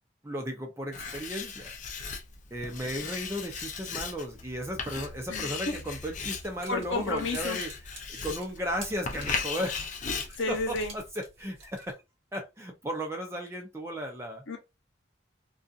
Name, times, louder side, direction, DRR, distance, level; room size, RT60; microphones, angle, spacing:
voice 1, 0.2-1.7 2.5-7.7 8.1-10.6 10.9-12.0 12.3-14.4, equal, 15° right, 0.5 m, -35 dB
Writing, 0.9-11.1, left 5 dB, 40° left, 0.4 m, -37 dB
voice 2, 5.3-5.7 6.7-7.6 10.4-10.9 14.5-14.6, left 3 dB, 75° left, 0.9 m, -31 dB
sound 1, 6.2-11.9, right 3 dB, 85° right, 1.2 m, -50 dB
2.6 x 2.4 x 2.4 m
head